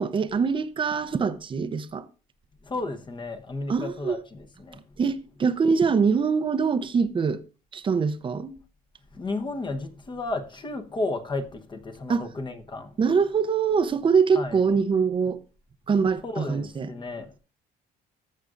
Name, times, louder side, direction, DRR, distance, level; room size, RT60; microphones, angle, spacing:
voice 1, 0.0-2.1 3.7-4.2 5.0-7.4 7.7-8.6 12.1-12.2 13.0-15.4 15.9-16.9, right 5 dB, 30° right, 0.7 m, -24 dB
voice 2, 2.6-5.0 9.1-13.0 14.3-14.6 16.2-17.4, left 2 dB, 25° left, 1.0 m, -33 dB
14.0 x 6.4 x 2.5 m
cardioid pair, 110°, 17 cm